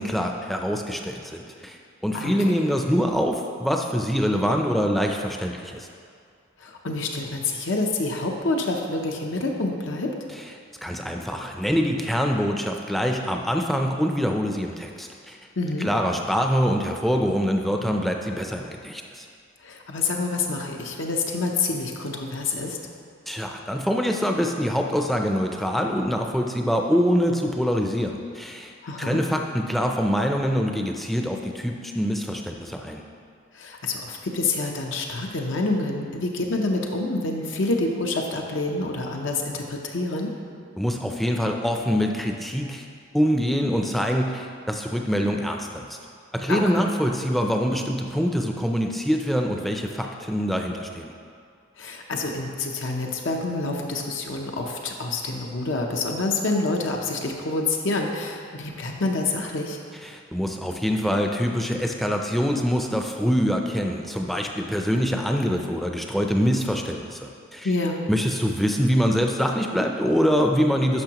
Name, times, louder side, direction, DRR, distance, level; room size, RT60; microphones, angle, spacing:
voice 1, 0.0-1.8 2.0-5.9 10.8-15.4 15.8-19.2 23.3-28.7 29.0-33.0 40.8-42.8 43.1-46.0 46.3-51.1 60.0-67.7 68.1-71.0, equal, ahead, 2 dB, 0.5 m, -24 dB
voice 2, 2.1-2.6 6.6-10.1 15.6-15.9 19.6-22.8 28.8-29.2 33.5-40.3 46.5-46.6 51.8-59.8 67.6-68.0, left 3 dB, 75° left, 1 dB, 0.8 m, -27 dB
10.5 x 6.2 x 3.0 m, 2.2 s
head